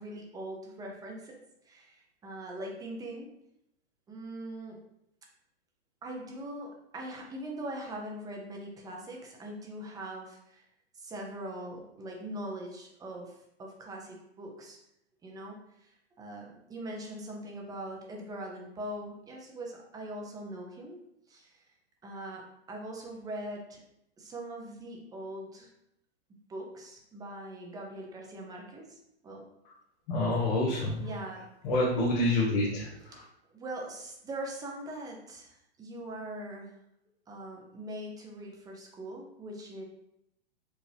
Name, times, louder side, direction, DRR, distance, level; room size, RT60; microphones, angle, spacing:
voice 1, 0.0-1.4 1.6-3.3 4.1-4.8 6.0-10.7 10.9-14.8 15.2-21.0 21.3-21.6 22.0-23.8 24.2-25.7 26.5-29.5 31.0-31.4 33.5-36.7 37.3-39.8, right 1 dB, 10° right, 0 dB, 0.5 m, -41 dB
voice 2, 30.1-31.1 31.6-33.2, left 1 dB, 50° left, -5 dB, 1.2 m, -28 dB
5.0 x 2.5 x 3.3 m, 0.80 s
hypercardioid pair, 135°, 32 cm